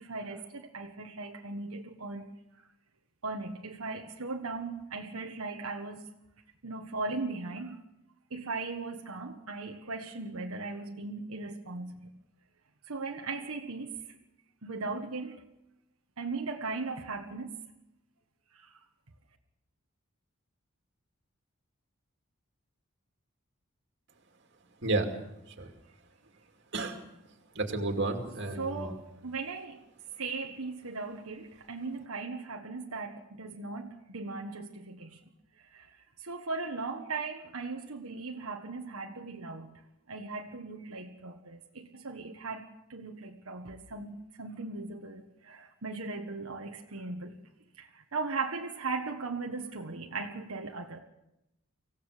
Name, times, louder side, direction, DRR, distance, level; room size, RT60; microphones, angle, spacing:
voice 1, 0.0-2.3 2.5-2.7 3.2-6.1 6.6-7.8 8.3-12.1 12.9-14.0 14.6-15.4 16.2-17.6 18.5-18.8 28.5-29.8 30.2-35.2 35.6-39.8 40.1-47.4 47.8-51.0, right 3 dB, 90° right, 2 dB, 1.5 m, -38 dB
voice 2, 24.8-25.1 25.5-25.7 26.7-27.0 27.5-28.9, right 2 dB, 55° right, 4 dB, 2.5 m, -31 dB
25.0 x 16.0 x 6.7 m, 0.87 s
head